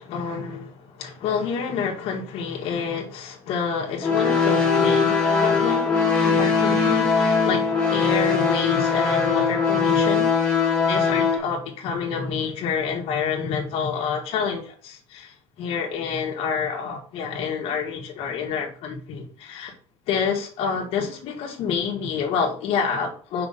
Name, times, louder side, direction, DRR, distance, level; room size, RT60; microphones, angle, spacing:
voice 1, 0.0-5.8 6.2-7.6 7.9-10.3 10.9-19.7 20.1-23.5, left 6 dB, 65° left, 0 dB, 1.6 m, -28 dB
sound 1, 4.0-11.4, left 5 dB, 10° left, 2.2 m, -20 dB
5.5 x 5.1 x 4.1 m, 0.43 s
cardioid pair, 175°, 11 cm